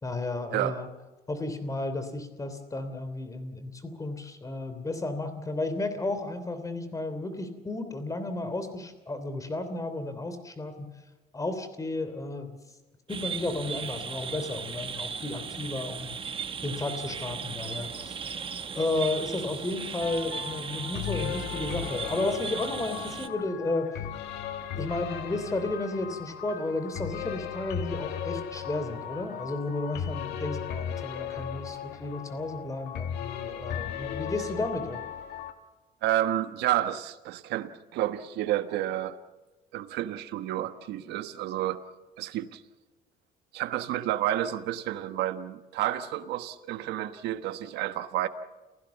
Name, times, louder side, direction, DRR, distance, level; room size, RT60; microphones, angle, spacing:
voice 1, 0.0-0.9 1.3-10.9 11.3-12.6 13.1-16.1 16.6-18.2 18.7-23.9 24.8-35.0, left 2 dB, 20° left, 3.1 m, -33 dB
sound 1, 13.1-23.3, right 6 dB, 30° right, 1.2 m, -37 dB
sound 2, 20.0-35.5, left 9 dB, 80° left, 2.0 m, -36 dB
voice 2, 36.0-39.2 39.7-41.8 42.2-42.6 43.5-48.3, right 13 dB, 85° right, 1.3 m, -30 dB
29.0 x 16.0 x 7.2 m
cardioid pair, 110°, 17 cm